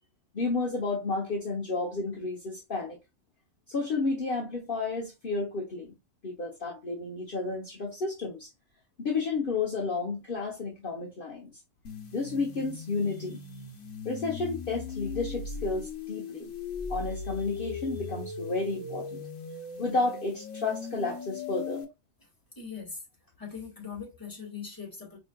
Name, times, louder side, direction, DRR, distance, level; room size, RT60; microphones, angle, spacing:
voice 1, 0.3-3.0 3.7-5.9 6.2-8.5 9.0-11.5 12.1-13.4 14.0-16.5 16.9-19.2 19.8-21.8, left 3 dB, 50° left, 1.1 m, -31 dB
sound 1, 11.8-21.8, left 4 dB, 85° left, 1.3 m, -38 dB
voice 2, 22.6-23.0 23.4-25.2, left 6 dB, 15° left, 1.8 m, -40 dB
4.7 x 3.7 x 2.3 m
omnidirectional pair, 1.3 m